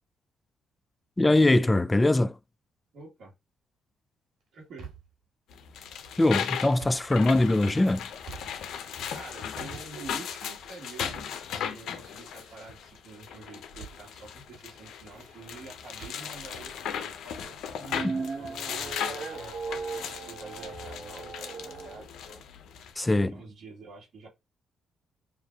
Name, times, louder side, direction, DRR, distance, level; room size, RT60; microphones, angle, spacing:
voice 1, 1.2-2.4 6.2-8.1 18.0-18.2 23.0-23.4, left 2 dB, 15° left, 0.3 m, -22 dB
voice 2, 2.9-3.3 4.5-4.9 9.1-17.6 18.4-22.4 23.1-24.3, right 3 dB, 70° right, 1.5 m, -47 dB
sound 1, 4.4-5.2 6.6-7.1 7.6-8.8 9.1-10.4 11.1-11.7 12.0-13.0 13.8-14.0 14.3-14.4 14.8-16.3, right 5 dB, 85° right, 2.2 m, -49 dB
sound 2, 5.5-22.9, left 8 dB, 75° left, 0.6 m, -37 dB
sound 3, 17.7-22.1, right 4 dB, 55° right, 1.3 m, -37 dB
6.4 x 2.6 x 2.3 m
cardioid pair, 90°, 0 cm